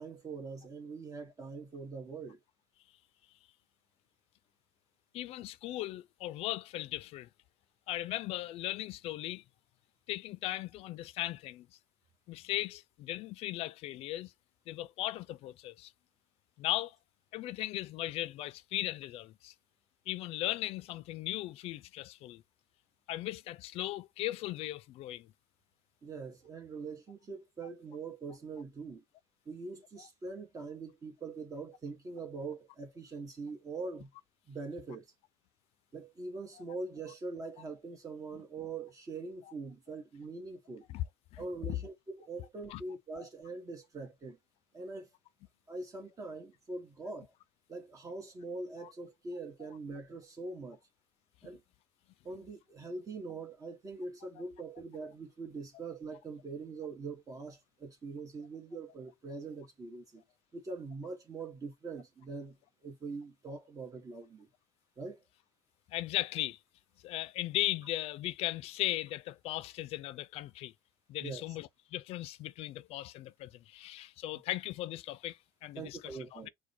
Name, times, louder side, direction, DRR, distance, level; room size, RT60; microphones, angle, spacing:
voice 1, 0.0-2.4 26.0-29.0 29.4-34.1 34.5-35.1 35.9-40.8 41.4-44.4 44.7-45.1 45.7-47.3 47.7-50.8 51.4-51.6 52.2-60.2 60.5-62.6 62.8-64.5 65.0-65.2 71.2-71.4 75.8-76.5, right 3 dB, 30° right, 1.2 m, -43 dB
voice 2, 5.1-7.3 7.9-9.4 10.1-11.7 12.3-14.3 14.7-15.9 16.6-17.0 17.3-19.5 20.1-22.4 23.1-25.3 40.9-41.0 41.3-41.4 42.7-42.8 43.2-43.3 65.9-66.6 67.0-70.7 71.1-76.0 76.3-76.5, left 15 dB, 65° left, 0.4 m, -37 dB
4.7 x 2.2 x 4.0 m
supercardioid pair, 100°, 11 cm